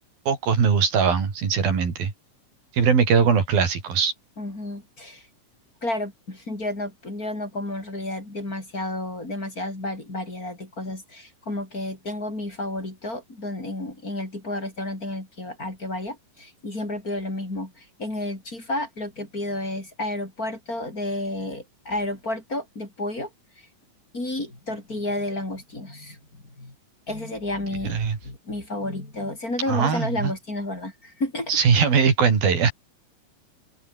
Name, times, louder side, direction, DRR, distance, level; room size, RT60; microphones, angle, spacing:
voice 1, 0.3-2.1 2.7-4.1 27.8-28.2 29.7-30.3 31.5-32.7, right 6 dB, 90° right, 6.2 m, -20 dB
voice 2, 4.4-5.2 5.8-23.3 24.1-26.7 27.1-28.0 28.2-31.6, left 1 dB, 25° left, 5.8 m, -31 dB
open air
omnidirectional pair, 4.1 m